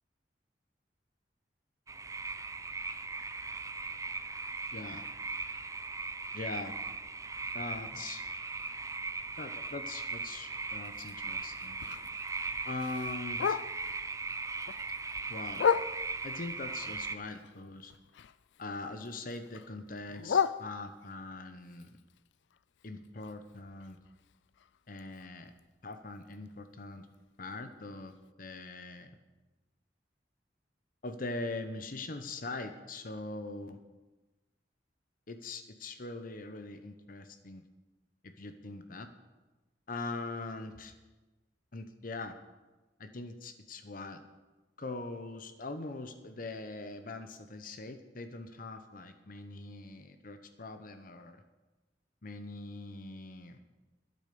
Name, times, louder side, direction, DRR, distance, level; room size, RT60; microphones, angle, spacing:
sound 1, 1.9-17.2, right 4 dB, 15° right, 0.5 m, -39 dB
voice 1, 4.7-5.1 6.3-6.7 7.5-8.2 9.4-11.8 12.7-13.6 15.3-15.6 16.2-17.9 18.6-21.9 22.8-24.0 24.9-25.5 25.8-27.1 27.4-29.1 31.0-33.8 35.3-37.6 38.2-39.1 39.9-40.9 41.7-42.3 43.0-44.2 44.8-51.4 52.2-53.6, left 2 dB, 50° left, 8 dB, 0.8 m, -42 dB
Bark, 10.8-14.0 14.4-16.3 16.8-18.6 18.9-21.2 21.7-25.6 25.9-26.0 26.3-26.7 27.1-27.2 27.6-27.7 28.2-28.3, left 7 dB, 75° left, 0.4 m, -36 dB
12.5 x 8.6 x 6.8 m, 1.2 s
head